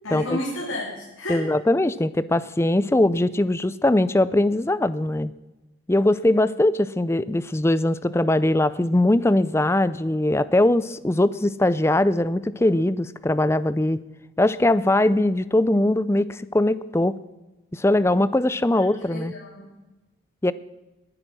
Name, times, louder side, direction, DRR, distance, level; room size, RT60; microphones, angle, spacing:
voice 1, 0.0-1.4 18.7-19.7, left 1 dB, 90° left, -4 dB, 3.4 m, -32 dB
voice 2, 1.3-5.3 5.9-14.0 14.4-17.1 17.7-19.3 20.4-20.5, left 1 dB, 15° left, 16 dB, 0.4 m, -21 dB
20.5 x 9.9 x 6.2 m, 1.1 s
head